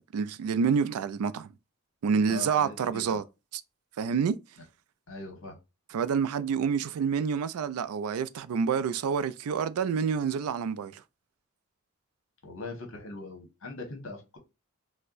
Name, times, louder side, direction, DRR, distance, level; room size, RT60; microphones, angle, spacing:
voice 1, 0.1-1.5 2.0-3.2 3.5-3.6 4.0-4.4 5.9-11.0, right 6 dB, 85° right, 0.3 m, -28 dB
voice 2, 2.3-3.2 5.1-5.6 12.4-14.4, left 3 dB, 60° left, 1.1 m, -41 dB
4.3 x 2.1 x 2.4 m
head